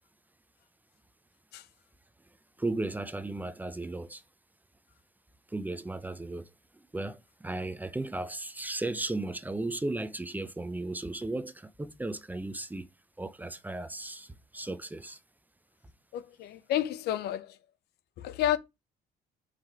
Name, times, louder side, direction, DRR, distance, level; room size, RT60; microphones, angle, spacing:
voice 1, 2.6-4.2 5.5-12.9 13.2-15.2, right 2 dB, 10° right, 0.6 m, -35 dB
voice 2, 16.1-17.5 18.2-18.6, left 12 dB, 75° left, 0.7 m, -30 dB
4.9 x 3.6 x 5.7 m
cardioid pair, 110°, 17 cm